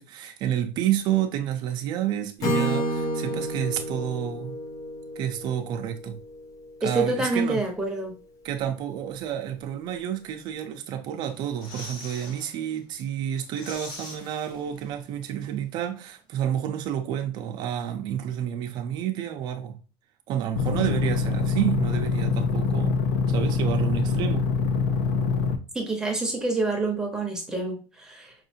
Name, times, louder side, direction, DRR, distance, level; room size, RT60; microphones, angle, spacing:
voice 1, 0.0-4.6 5.2-6.2 6.8-7.6 8.4-19.8 20.3-23.0 23.3-24.5, right 10 dB, 55° right, 0.6 m, -29 dB
Acoustic guitar / Strum, 2.4-6.4, right 1 dB, 40° left, 0.9 m, -30 dB
voice 2, 6.8-8.1 25.7-28.3, right 3 dB, 5° right, 1.0 m, -27 dB
sound 1, 11.2-12.5 12.9-13.0 13.3-15.1 15.3-15.4, left 2 dB, 55° left, 2.2 m, -42 dB
sound 2, 20.6-25.6, left 5 dB, 80° left, 0.6 m, -24 dB
5.5 x 2.6 x 2.7 m
cardioid pair, 145°, 9 cm